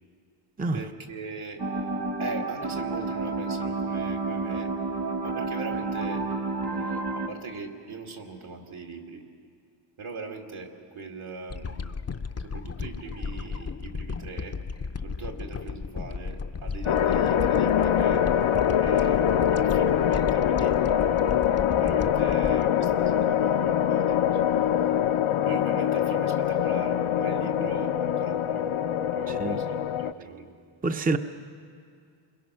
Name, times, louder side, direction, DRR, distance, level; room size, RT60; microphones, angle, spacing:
voice 1, 0.7-1.6 2.2-4.7 5.2-6.2 6.6-9.2 10.0-11.9 12.4-14.6 15.0-18.2 18.8-21.4 21.8-24.5 25.4-28.7 29.0-30.5, right 3 dB, 75° right, 2.5 m, -40 dB
sound 1, 1.6-7.3, right 3 dB, 50° right, 1.7 m, -30 dB
sound 2, 11.5-23.8 24.3-24.4, left 5 dB, 30° left, 0.6 m, -35 dB
sound 3, 16.9-30.1, left 9 dB, 75° left, 0.7 m, -24 dB
voice 2, 29.3-29.6 30.8-31.2, right 3 dB, 15° right, 0.6 m, -27 dB
29.0 x 21.5 x 6.3 m
wide cardioid pair, 105°, 50 cm